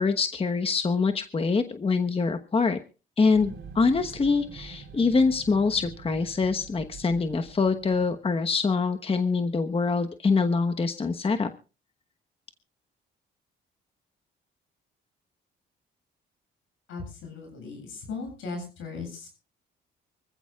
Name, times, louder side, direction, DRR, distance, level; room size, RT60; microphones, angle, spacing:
voice 1, 0.0-2.8 3.2-11.5, left 4 dB, 30° left, 7 dB, 1.2 m, -25 dB
sound 1, 3.3-8.5, right 5 dB, 70° right, 3.9 m, -45 dB
voice 2, 16.9-19.3, left 4 dB, 85° left, 3 dB, 7.6 m, -37 dB
25.0 x 15.0 x 2.4 m, 0.33 s
cardioid pair, 90°, 20 cm